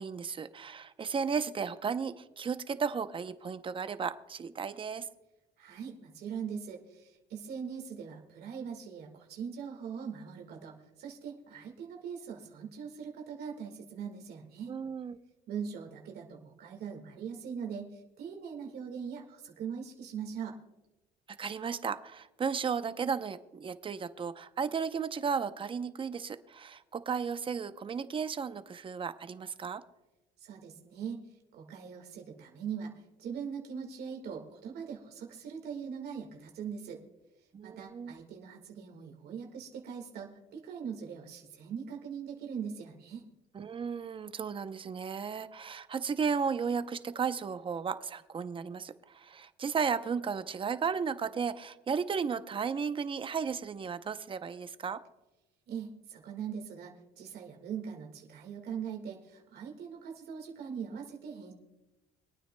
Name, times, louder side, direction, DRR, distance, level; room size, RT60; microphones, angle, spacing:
voice 1, 0.0-5.1 14.7-15.2 21.4-29.8 37.5-38.1 43.5-55.0, right 6 dB, 30° right, 12 dB, 0.6 m, -34 dB
voice 2, 5.6-14.7 15.5-20.6 30.4-31.2 31.5-37.0 37.6-43.3 55.7-61.5, right 7 dB, 70° right, 2 dB, 1.7 m, -41 dB
25.5 x 9.2 x 2.2 m, 0.98 s
cardioid pair, 110°, 17 cm